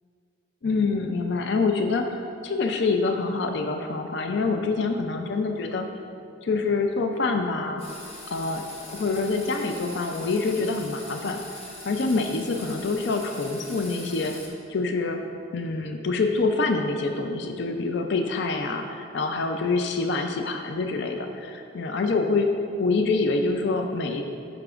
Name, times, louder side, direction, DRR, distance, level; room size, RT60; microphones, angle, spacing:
voice 1, 0.6-5.9 6.4-7.8 8.3-11.4 11.8-14.4 14.7-15.2 15.5-22.5 22.8-24.2, left 3 dB, 55° left, 5 dB, 0.4 m, -26 dB
sound 1, 7.8-14.5, left 1 dB, 30° left, 1.0 m, -42 dB
11.5 x 5.9 x 2.4 m, 2.5 s
head